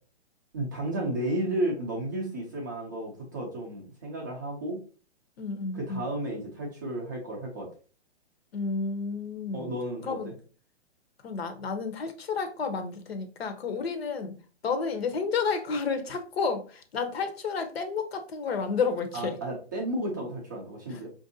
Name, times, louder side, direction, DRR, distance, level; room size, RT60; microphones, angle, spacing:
voice 1, 0.5-4.8 5.7-7.7 9.5-10.3 19.1-21.1, right 1 dB, 20° right, 0.4 m, -33 dB
voice 2, 5.4-6.1 8.5-9.7 10.0-10.3 11.2-14.3 14.6-19.4, left 5 dB, 60° left, 0.8 m, -31 dB
4.6 x 2.6 x 2.6 m
hypercardioid pair, 160°, 34 cm